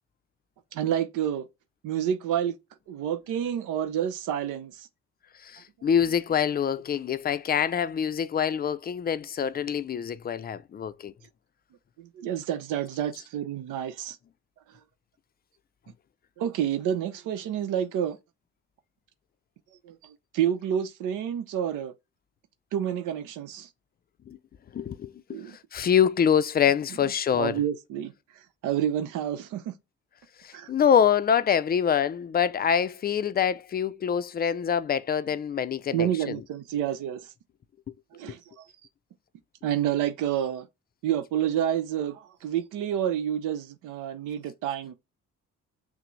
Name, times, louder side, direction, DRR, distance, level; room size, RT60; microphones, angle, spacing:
voice 1, 0.7-1.5 1.8-2.6 2.9-4.9 12.0-14.2 16.4-18.2 19.8-21.9 22.7-23.7 25.3-25.6 27.3-28.1 28.6-29.7 30.5-30.7 35.9-37.3 38.1-38.6 39.6-40.7 41.0-44.9, right 10 dB, 90° right, 0.7 m, -29 dB
voice 2, 5.4-11.1 24.3-24.4 24.7-25.4 25.7-27.6 30.4-36.4, left 8 dB, 30° left, 0.4 m, -25 dB
5.8 x 2.1 x 3.1 m
cardioid pair, 90°, 30 cm